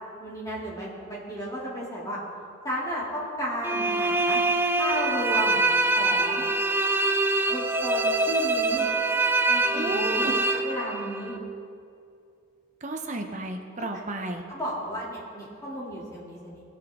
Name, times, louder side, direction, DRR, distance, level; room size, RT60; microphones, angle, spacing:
voice 1, 0.2-2.2 2.6-4.4 4.7-5.6 5.9-6.4 7.5-8.9 9.5-11.4 13.9-14.0 14.5-16.6, equal, 15° left, -7 dB, 2.9 m, -33 dB
sound 1, 3.6-11.4, right 2 dB, 10° right, 0.3 m, -24 dB
voice 2, 9.7-10.4 12.8-14.4, right 2 dB, 35° right, 3 dB, 0.9 m, -32 dB
19.0 x 8.3 x 3.8 m, 2.4 s
head